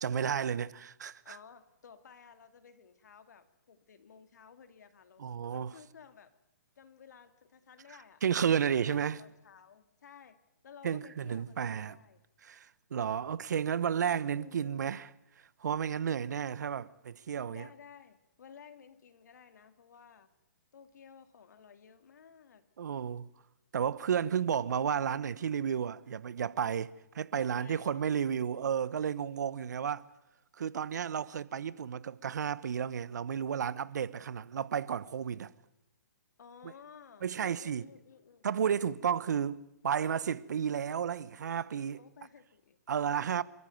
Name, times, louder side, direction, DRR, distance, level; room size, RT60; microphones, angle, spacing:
voice 1, 0.0-1.4 5.2-5.7 8.2-9.2 10.8-12.0 12.4-15.1 15.6-17.7 22.8-23.3 23.7-30.1 30.6-35.5 36.6-36.7 37.2-37.9 38.4-42.0 42.9-43.4, right 8 dB, 70° right, 1.0 m, -32 dB
voice 2, 1.2-6.3 6.8-8.2 8.7-12.2 14.3-14.8 17.5-20.3 20.7-22.7 27.3-28.0 36.4-38.4 41.9-42.8, left 7 dB, 70° left, 2.3 m, -55 dB
27.5 x 14.0 x 9.3 m
hypercardioid pair, 145°, 10 cm